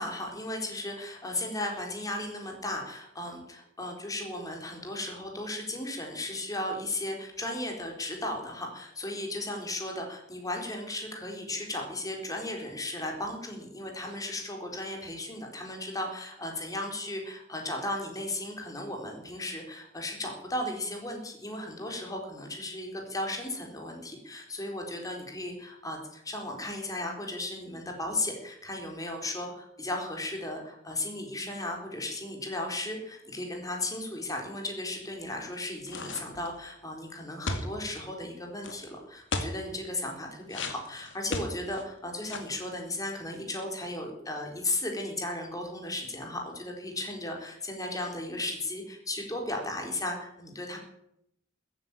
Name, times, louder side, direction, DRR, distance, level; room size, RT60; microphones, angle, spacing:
voice 1, 0.0-50.8, left 1 dB, 20° left, 1 dB, 4.0 m, -35 dB
sound 1, 35.9-36.6 37.5-38.0 38.6-38.7 39.3-39.6 40.5-41.8 42.2-42.6, left 2 dB, 70° left, 2.4 m, -34 dB
15.0 x 9.7 x 8.9 m, 0.77 s
head